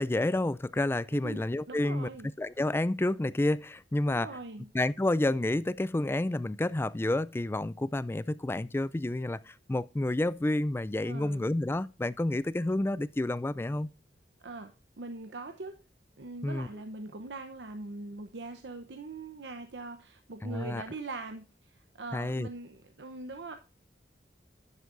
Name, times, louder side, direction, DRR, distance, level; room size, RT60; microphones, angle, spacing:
voice 1, 0.0-2.1 2.4-4.3 4.7-13.9 16.4-16.7 20.4-20.8 22.1-22.5, left 1 dB, 15° left, 0.3 m, -29 dB
voice 2, 1.7-2.3 4.1-4.7 11.0-11.5 14.4-15.7 16.2-23.6, right 3 dB, 75° right, 0.8 m, -42 dB
11.0 x 8.2 x 2.5 m
head